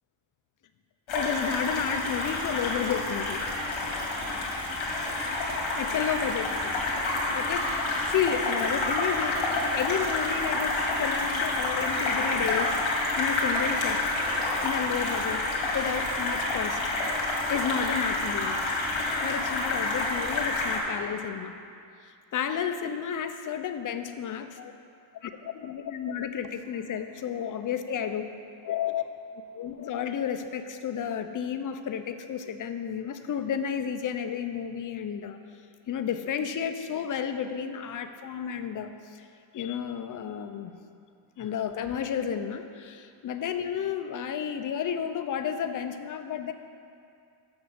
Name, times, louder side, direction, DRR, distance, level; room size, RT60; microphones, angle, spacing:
sound 1, 1.1-20.8, left 2 dB, 80° left, 2.0 m, -28 dB
voice 1, 1.1-3.4 5.7-6.8 7.3-12.8 13.2-14.0 14.6-15.4 15.7-16.9 17.5-18.6 19.2-21.6 22.0-24.7 25.2-28.2 28.6-29.1 29.5-35.4 35.9-39.2 39.5-40.7 41.4-46.5, left 8 dB, 45° left, 8 dB, 0.6 m, -32 dB
6.2 x 6.1 x 7.2 m, 2.4 s
cardioid pair, 115°, 47 cm